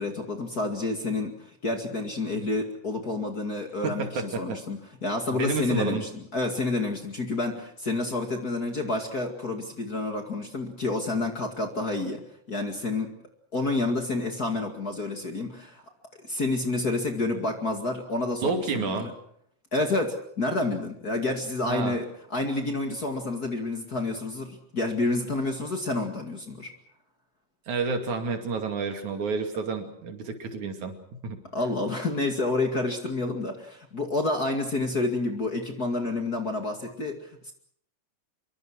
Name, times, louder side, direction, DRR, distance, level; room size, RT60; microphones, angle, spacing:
voice 1, 0.0-12.2 12.5-13.1 13.5-15.8 16.2-19.1 19.7-26.7 31.5-37.5, left 2 dB, 30° left, 4 dB, 2.3 m, -29 dB
voice 2, 3.8-4.6 5.3-6.0 18.4-19.1 21.6-22.0 27.7-30.9 31.2-31.4, right 4 dB, 65° right, 5 dB, 3.9 m, -29 dB
25.5 x 23.5 x 6.3 m, 0.66 s
omnidirectional pair, 3.7 m